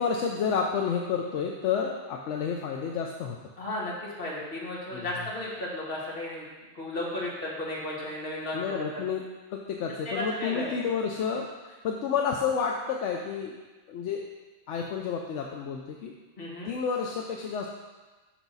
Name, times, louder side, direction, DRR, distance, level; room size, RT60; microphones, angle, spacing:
voice 1, 0.0-3.4 4.9-5.1 8.5-9.2 9.5-13.5 13.9-14.2 14.7-16.1 16.7-17.7, left 6 dB, 80° left, 1 dB, 0.9 m, -30 dB
voice 2, 3.6-6.5 6.7-9.0 10.1-10.8 16.4-16.7, left 1 dB, 50° left, -5 dB, 1.8 m, -34 dB
6.3 x 5.9 x 4.0 m, 1.2 s
omnidirectional pair, 1.2 m